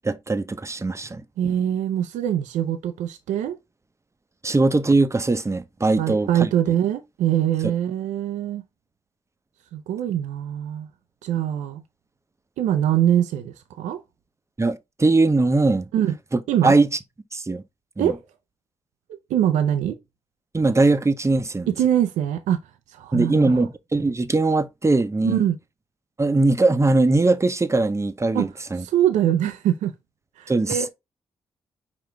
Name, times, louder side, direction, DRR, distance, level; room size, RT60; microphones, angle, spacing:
voice 1, 0.0-1.2 4.4-6.5 14.6-15.8 16.3-16.9 17.3-17.6 18.0-18.1 20.5-21.7 23.1-25.4 26.2-28.8 30.5-30.9, right 3 dB, 25° right, 0.7 m, -20 dB
voice 2, 1.4-3.6 6.0-8.6 9.7-10.9 11.2-11.8 12.6-14.0 15.9-16.1 16.5-16.8 18.0-18.2 19.3-20.0 21.7-22.6 22.9-23.6 25.2-25.6 28.3-28.5 28.8-29.9 30.4-30.9, right 10 dB, 80° right, 0.5 m, -23 dB
5.0 x 2.9 x 3.3 m
hypercardioid pair, 40°, 12 cm